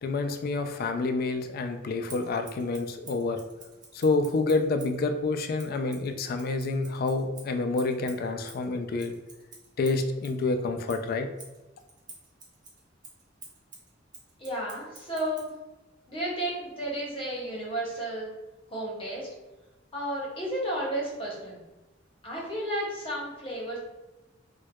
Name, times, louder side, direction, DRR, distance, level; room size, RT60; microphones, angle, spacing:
voice 1, 0.0-3.4 3.9-9.1 9.8-11.3, left 3 dB, 50° left, 7 dB, 0.3 m, -28 dB
Scissors, 2.1-5.0 5.6-10.4 10.9-15.5, right 3 dB, 20° right, 0.7 m, -50 dB
voice 2, 14.4-15.5 16.1-18.3 18.7-19.3 19.9-21.6 22.2-23.8, right 1 dB, 30° left, -4 dB, 0.9 m, -32 dB
4.4 x 2.2 x 2.2 m, 1.1 s
head